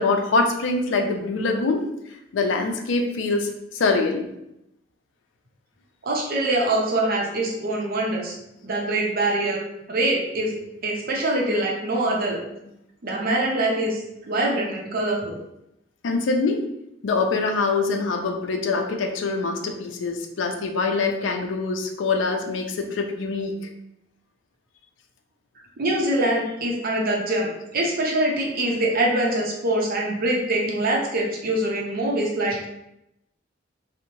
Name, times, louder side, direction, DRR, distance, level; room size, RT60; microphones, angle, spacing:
voice 1, 0.0-1.9 2.3-4.3 16.0-16.6 17.0-23.5, left 3 dB, 80° left, 3 dB, 0.4 m, -24 dB
voice 2, 6.0-8.3 8.6-9.6 9.9-12.4 13.0-15.4 25.8-32.7, right 1 dB, 55° right, -1 dB, 0.6 m, -24 dB
2.7 x 2.0 x 2.9 m, 0.83 s
head